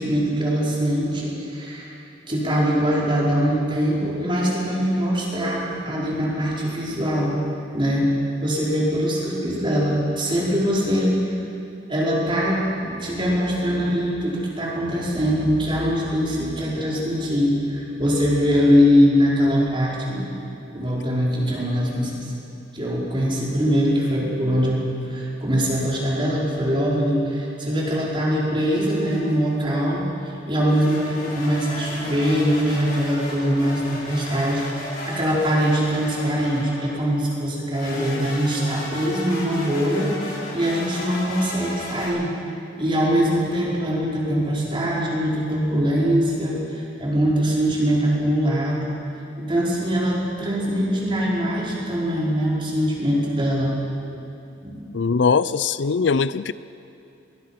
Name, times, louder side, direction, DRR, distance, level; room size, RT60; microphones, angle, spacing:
voice 1, 0.0-1.9 2.3-7.4 7.7-8.1 8.4-11.2 11.9-20.2 20.7-22.3 22.7-30.1 30.5-40.1 40.5-42.3 42.8-48.9 49.4-53.7 54.1-54.2 54.6-54.8, equal, 30° right, -4 dB, 4.8 m, -22 dB
sound 1, 28.6-29.6 30.7-37.1 37.7-42.1, left 2 dB, 50° left, 5.5 m, -35 dB
voice 2, 54.9-56.5, left 5 dB, 85° left, 16 dB, 0.5 m, -21 dB
22.5 x 20.0 x 5.9 m, 2.7 s
head